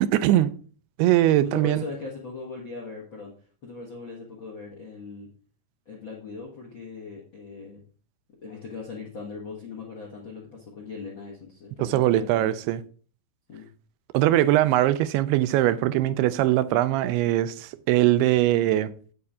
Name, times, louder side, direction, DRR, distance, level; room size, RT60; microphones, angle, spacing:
voice 1, 0.1-0.5 1.0-1.8 11.8-12.8 14.1-18.9, right 14 dB, 80° right, 2.5 m, -21 dB
voice 2, 1.4-3.3 3.6-5.3 5.8-7.8 8.4-12.6 13.5-13.7, left 4 dB, 60° left, 1.3 m, -39 dB
9.5 x 8.8 x 3.6 m
omnidirectional pair, 4.8 m